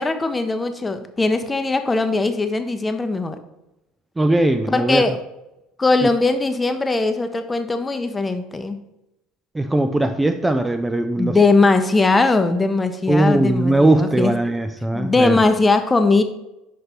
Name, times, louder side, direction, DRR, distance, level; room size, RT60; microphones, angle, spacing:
voice 1, 0.0-3.4 4.7-5.2 5.8-8.8 11.2-14.3 14.9-16.2, left 3 dB, 15° left, 8 dB, 0.7 m, -19 dB
voice 2, 4.2-5.0 9.5-11.4 13.1-15.4, right 1 dB, 15° right, 8 dB, 0.4 m, -19 dB
6.0 x 5.2 x 4.1 m, 0.91 s
hypercardioid pair, 80°, 0 cm